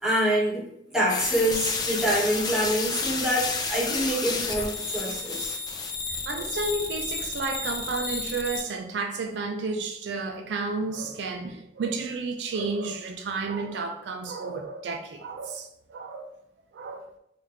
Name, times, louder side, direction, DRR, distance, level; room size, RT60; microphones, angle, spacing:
voice 1, 0.0-5.5, right 1 dB, 5° right, 0.8 m, -26 dB
sound 1, 1.1-8.6, left 4 dB, 25° left, 0.4 m, -31 dB
voice 2, 6.1-16.3 16.7-17.0, right 4 dB, 70° right, 0.3 m, -32 dB
3.2 x 2.4 x 3.2 m
head